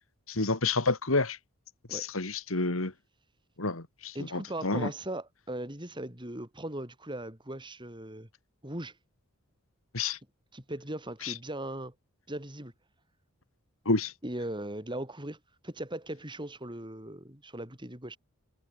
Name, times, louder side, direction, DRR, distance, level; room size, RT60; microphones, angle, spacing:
voice 1, 0.3-1.4 1.9-2.9 3.6-4.9 9.9-10.2 11.2-11.3 13.9-14.1, left 3 dB, 70° left, 2.5 m, -29 dB
voice 2, 4.1-8.3 8.6-9.0 10.5-11.9 12.3-12.7 14.2-18.2, right 1 dB, 20° right, 5.3 m, -39 dB
head